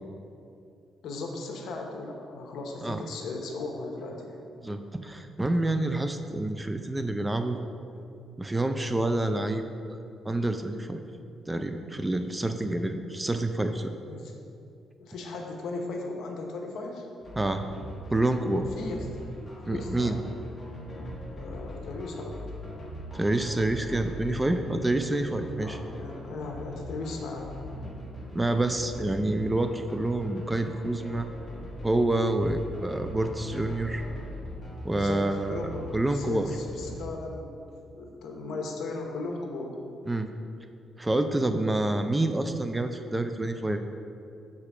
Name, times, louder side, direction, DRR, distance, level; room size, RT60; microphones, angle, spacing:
voice 1, 1.0-4.4 14.1-14.3 15.0-17.1 18.8-19.1 19.6-20.3 21.3-22.6 25.1-25.2 25.6-27.6 34.9-39.8, left 3 dB, 75° left, 1 dB, 0.9 m, -37 dB
voice 2, 4.6-7.6 8.4-9.6 9.9-10.0 10.2-11.0 11.5-13.9 17.4-17.6 18.1-18.7 19.7-20.2 23.1-25.8 28.3-31.3 31.8-34.1 34.8-36.5 40.1-40.3 41.0-43.8, right 2 dB, 15° right, 7 dB, 0.4 m, -27 dB
sound 1, 17.2-37.1, equal, 25° left, 1.3 m, -41 dB
4.9 x 4.2 x 5.9 m, 2.5 s
cardioid pair, 90°, 0 cm